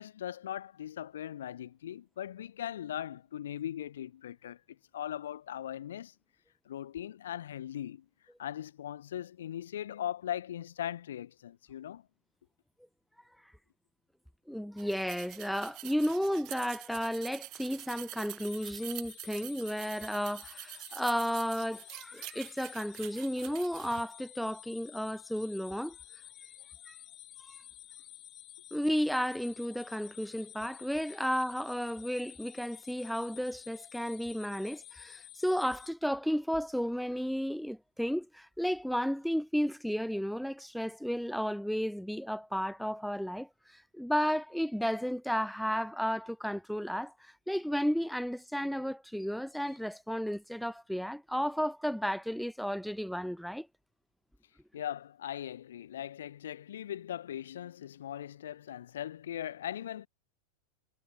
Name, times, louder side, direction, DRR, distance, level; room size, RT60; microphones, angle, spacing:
voice 1, 0.0-6.1 6.7-8.1 8.4-12.1 54.7-60.1, left 11 dB, 60° left, 5.6 m, -39 dB
voice 2, 14.5-26.0 26.4-26.5 26.9-27.0 27.4-27.6 28.7-53.7, equal, ahead, 2.1 m, -33 dB
sound 1, 14.8-24.0, right 20 dB, 40° right, 3.0 m, -46 dB
sound 2, 18.4-35.9, left 12 dB, 30° left, 5.5 m, -52 dB
figure-of-eight pair, 90°, 0 cm